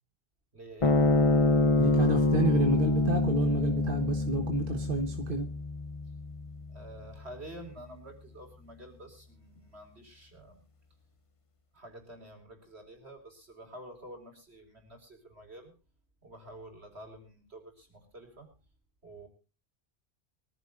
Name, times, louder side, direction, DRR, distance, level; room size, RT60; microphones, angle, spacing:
voice 1, 0.5-1.1 6.7-10.6 11.7-15.7 16.2-18.5 19.0-19.3, right 1 dB, 80° right, 4 dB, 5.0 m, -49 dB
sound 1, 0.8-7.5, left 3 dB, 30° left, 1.0 m, -26 dB
voice 2, 1.8-5.5, right 3 dB, 55° right, 5 dB, 1.6 m, -31 dB
24.0 x 14.5 x 2.5 m, 0.33 s
omnidirectional pair, 1.1 m